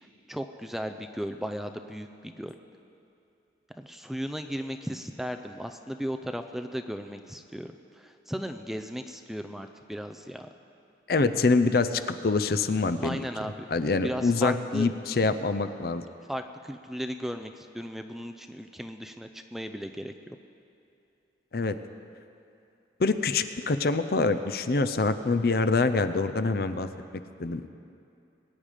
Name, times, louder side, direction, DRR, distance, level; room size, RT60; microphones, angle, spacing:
voice 1, 0.3-2.5 3.7-10.5 13.0-13.7 14.0-14.9 16.3-20.4, equal, ahead, 6 dB, 0.4 m, -36 dB
voice 2, 11.1-13.2 13.7-16.0 21.5-21.8 23.0-26.9 27.4-27.7, left 3 dB, 55° left, 10 dB, 0.5 m, -25 dB
21.5 x 9.1 x 5.0 m, 2.7 s
head